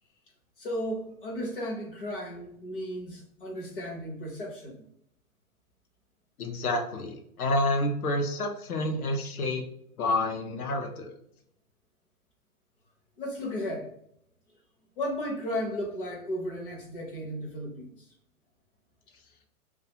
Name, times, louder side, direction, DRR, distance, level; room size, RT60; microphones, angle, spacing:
voice 1, 0.6-4.8 13.2-13.9 15.0-17.9, equal, 40° left, 0.7 m, -34 dB
voice 2, 6.4-9.6 10.0-11.1, left 1 dB, 80° left, 0.8 m, -29 dB
2.4 x 2.3 x 2.8 m
hypercardioid pair, 175°, 44 cm